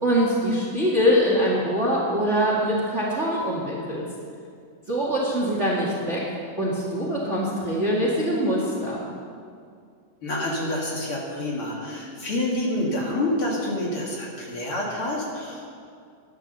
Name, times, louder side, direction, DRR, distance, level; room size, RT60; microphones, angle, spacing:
voice 1, 0.0-4.0 4.9-6.2 6.6-9.0, equal, 25° right, -4 dB, 1.8 m, -23 dB
voice 2, 10.2-15.7, left 1 dB, 50° left, -3 dB, 2.6 m, -28 dB
12.5 x 10.0 x 6.7 m, 2.2 s
omnidirectional pair, 3.5 m